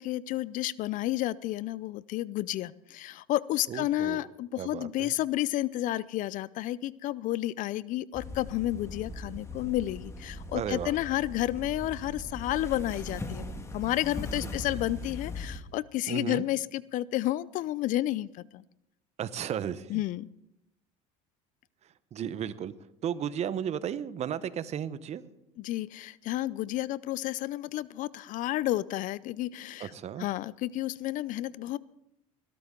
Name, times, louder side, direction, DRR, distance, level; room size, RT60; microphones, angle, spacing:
voice 1, 0.0-18.6 19.9-20.3 25.6-29.9 30.2-31.8, left 15 dB, 55° left, 21 dB, 0.5 m, -31 dB
voice 2, 3.7-4.3 4.6-5.1 10.5-10.9 14.4-14.5 16.1-16.4 19.2-20.0 22.1-22.7 23.0-25.2 29.8-30.3, right 9 dB, 40° right, 15 dB, 0.9 m, -34 dB
sound 1, 8.1-15.6, left 1 dB, 15° left, 1.6 m, -40 dB
20.0 x 12.5 x 3.8 m, 0.82 s
supercardioid pair, 100°, 17 cm